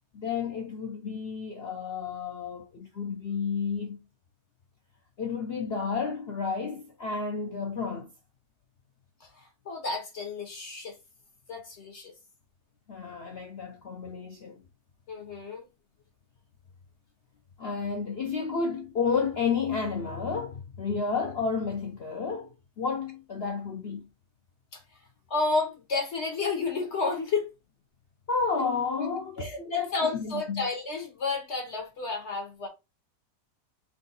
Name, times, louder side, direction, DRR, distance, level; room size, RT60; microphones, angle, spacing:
voice 1, 0.1-4.0 5.2-8.1 12.9-14.6 17.6-22.5 22.8-24.0 28.3-29.5 29.7-29.9 30.1-30.6, left 5 dB, 75° left, 0.5 m, -31 dB
voice 2, 9.2-11.0 11.5-12.1 15.1-15.6 24.7-24.8 25.3-27.5 29.4-32.7, left 3 dB, 50° left, 1.0 m, -31 dB
3.5 x 2.6 x 3.9 m
omnidirectional pair, 1.9 m